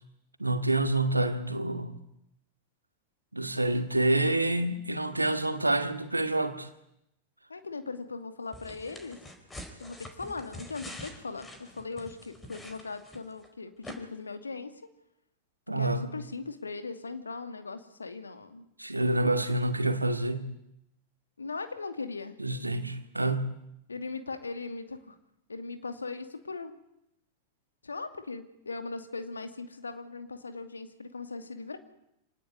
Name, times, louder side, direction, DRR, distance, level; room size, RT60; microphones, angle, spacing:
voice 1, 0.4-1.9 3.3-6.7 15.7-16.1 18.8-20.5 22.4-23.5, right 2 dB, 85° right, 8 dB, 2.3 m, -27 dB
voice 2, 7.5-9.2 9.8-14.7 15.8-18.7 21.4-22.3 23.9-25.2 25.5-26.7 27.8-31.8, left 4 dB, 75° left, 8 dB, 2.5 m, -39 dB
sound 1, 8.5-13.5 13.8-14.0, left 1 dB, 10° left, 4.6 m, -46 dB
26.0 x 18.0 x 9.8 m, 0.81 s
figure-of-eight pair, 90°, 0 cm